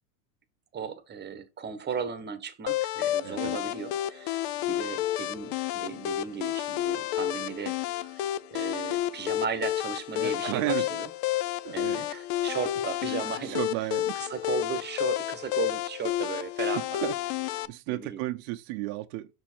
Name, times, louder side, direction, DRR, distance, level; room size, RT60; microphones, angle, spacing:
voice 1, 0.7-4.4 4.7-8.2 8.5-11.1 11.7-13.6 14.1-17.1 17.9-18.2, right 6 dB, 25° right, 1.0 m, -36 dB
sound 1, 2.7-17.7, left 14 dB, 50° left, 0.5 m, -30 dB
voice 2, 3.2-3.6 10.1-10.9 11.6-12.1 13.2-14.2 16.7-17.1 17.4-19.3, right 17 dB, 60° right, 0.7 m, -33 dB
6.5 x 4.4 x 4.4 m
supercardioid pair, 125°, 44 cm